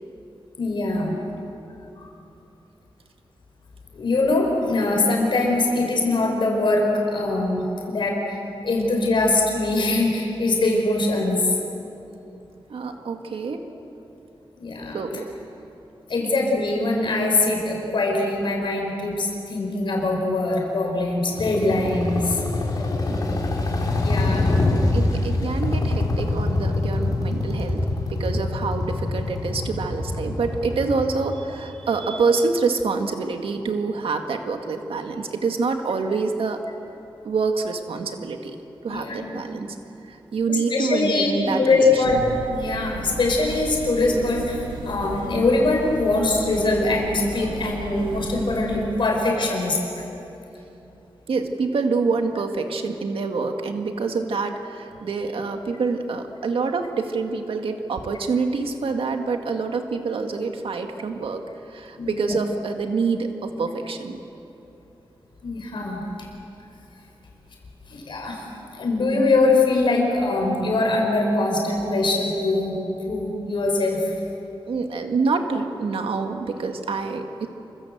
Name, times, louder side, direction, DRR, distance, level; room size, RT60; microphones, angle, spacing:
voice 1, 0.6-1.1 2.0-2.1 3.9-11.4 14.6-15.0 16.1-22.4 24.0-24.6 38.9-39.4 40.5-49.8 61.9-62.3 65.4-66.0 67.9-68.4 68.7-72.8 73.1-74.1, left 2 dB, 60° left, 0 dB, 5.2 m, -22 dB
voice 2, 12.7-13.7 14.9-15.3 23.1-23.5 24.9-36.6 37.2-38.6 38.8-39.8 40.1-42.2 44.1-44.2 51.3-64.2 74.7-77.5, right 4 dB, 80° right, 4 dB, 1.8 m, -26 dB
sound 1, 21.4-31.0, left 2 dB, 45° left, 4.3 m, -24 dB
sound 2, 42.0-48.9, right 2 dB, 60° right, 2.3 m, -36 dB
28.5 x 25.0 x 7.9 m, 2.9 s
wide cardioid pair, 165°, 9 cm